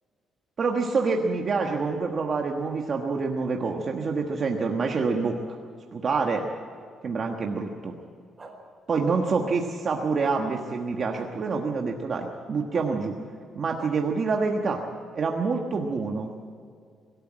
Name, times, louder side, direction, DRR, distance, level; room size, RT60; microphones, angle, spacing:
voice 1, 0.6-5.6 5.9-6.4 7.0-7.9 8.9-13.2 13.5-14.8 15.1-16.3, right 4 dB, 40° right, 2 dB, 1.4 m, -27 dB
sound 1, 8.4-8.5 9.2-9.4 10.2-10.3 11.1-11.3 12.7-12.9 13.8-13.9, right 3 dB, 20° right, 4.8 m, -45 dB
24.0 x 13.0 x 8.8 m, 2.3 s
cardioid pair, 160°, 0 cm